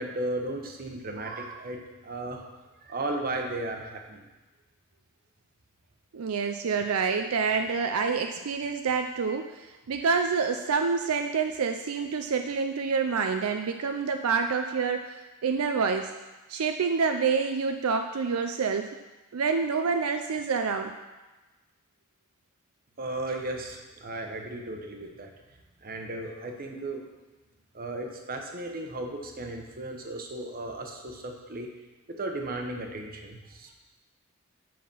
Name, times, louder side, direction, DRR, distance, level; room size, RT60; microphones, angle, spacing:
voice 1, 0.0-2.4 2.8-4.3 23.0-25.3 25.8-27.0 27.7-31.7 32.1-33.7, right 2 dB, 45° right, 3 dB, 1.1 m, -35 dB
voice 2, 6.1-16.1 16.5-19.0 19.3-20.9, right 5 dB, 80° right, 5 dB, 0.5 m, -27 dB
7.6 x 5.9 x 5.4 m, 1.1 s
head